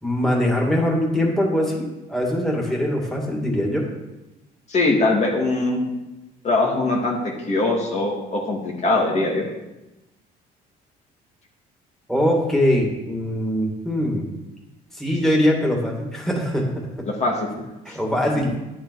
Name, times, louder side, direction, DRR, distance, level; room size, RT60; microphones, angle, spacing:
voice 1, 0.0-3.8 12.1-14.3 14.9-16.7 17.0-17.1 17.9-18.5, left 1 dB, ahead, -2 dB, 2.5 m, -22 dB
voice 2, 4.7-5.9 6.4-7.2 7.5-9.4 17.2-17.5, left 2 dB, 40° left, -2 dB, 2.1 m, -21 dB
9.9 x 8.6 x 4.8 m, 1.0 s
cardioid pair, 110°, 17 cm